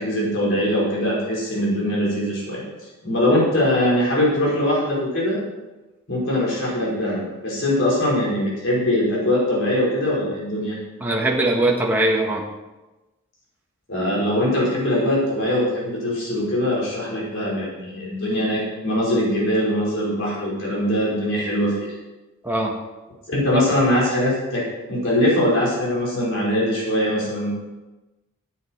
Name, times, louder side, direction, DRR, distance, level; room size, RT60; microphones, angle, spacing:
voice 1, 0.0-2.6 3.0-5.4 6.1-10.8 13.9-21.9 23.3-24.6 24.9-27.6, left 1 dB, 55° left, -5 dB, 5.3 m, -22 dB
voice 2, 11.0-12.4 22.4-22.7, right 1 dB, 10° right, -3 dB, 1.7 m, -21 dB
13.5 x 9.6 x 4.7 m, 1.1 s
head